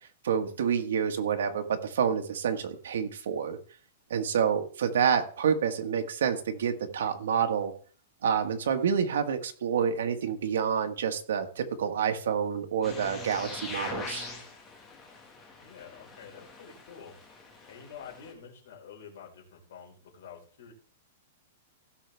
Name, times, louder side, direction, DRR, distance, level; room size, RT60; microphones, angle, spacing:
voice 1, 0.2-3.6 4.1-7.7 8.2-14.3, right 7 dB, 80° right, 5 dB, 1.6 m, -28 dB
sound 1, 12.8-18.3, left 3 dB, 10° left, 1.9 m, -43 dB
voice 2, 15.5-17.1 17.7-20.7, left 7 dB, 60° left, -1 dB, 4.7 m, -48 dB
16.5 x 6.4 x 3.5 m, 0.43 s
supercardioid pair, 175°, 0 cm